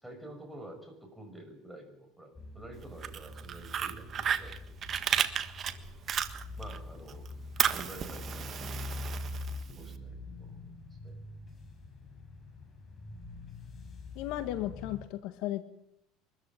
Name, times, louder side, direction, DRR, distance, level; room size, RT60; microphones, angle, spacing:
voice 1, 0.0-4.5 6.6-7.3 7.7-9.1 9.7-10.7 11.0-11.2 12.1-12.2, right 1 dB, 5° right, 3 dB, 6.3 m, -49 dB
sound 1, 2.3-15.1, left 2 dB, 25° left, 5.8 m, -44 dB
Fire, 2.8-6.8 7.1-9.9, right 8 dB, 35° right, 1.6 m, -33 dB
voice 2, 14.2-15.6, left 14 dB, 65° left, 10 dB, 1.7 m, -35 dB
24.0 x 14.0 x 9.9 m, 0.79 s
cardioid pair, 135°, 0 cm